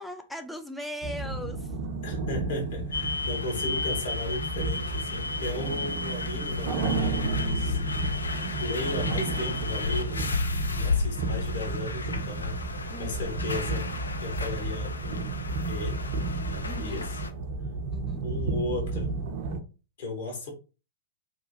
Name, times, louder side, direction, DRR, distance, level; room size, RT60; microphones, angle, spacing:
voice 1, 0.0-1.7 12.9-13.4 16.7-17.1 17.9-18.2, equal, 5° left, 0.4 m, -39 dB
sound 1, 1.0-19.6, right 3 dB, 50° right, 0.5 m, -32 dB
voice 2, 2.0-7.8 8.6-10.3 10.7-12.6 12.9-13.9 14.2-15.3 15.7-16.1 16.5-17.1 18.2-19.1 20.0-20.5, left 2 dB, 60° left, 1.2 m, -35 dB
sound 2, 2.9-17.3, left 4 dB, 75° left, 0.3 m, -33 dB
2.9 x 2.3 x 2.7 m
figure-of-eight pair, 100°, 0 cm